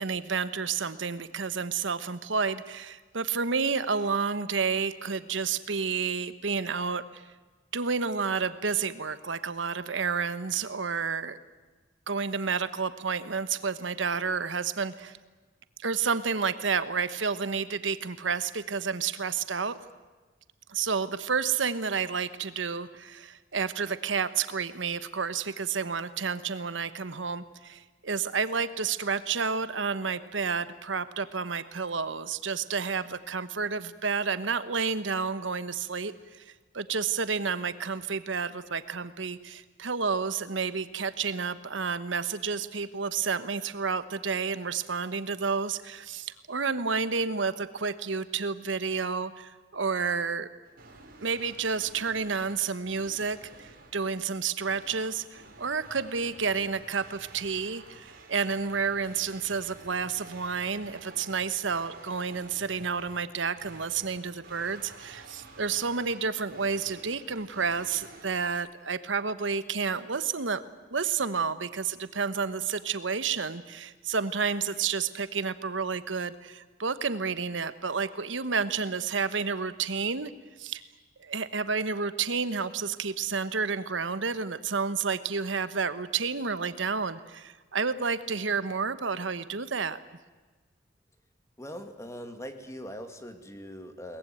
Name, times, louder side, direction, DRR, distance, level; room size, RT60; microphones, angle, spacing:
voice 1, 0.0-7.2 7.7-11.4 12.1-15.2 15.8-19.8 20.7-50.5 51.2-70.6 70.9-80.3 80.6-80.8 81.2-90.0, right 5 dB, 80° right, 13 dB, 1.1 m, -30 dB
sound 1, 50.6-68.6, right 3 dB, 50° right, 5.0 m, -51 dB
voice 2, 91.6-94.2, equal, 15° left, 7 dB, 2.2 m, -41 dB
22.5 x 20.0 x 9.3 m, 1.3 s
head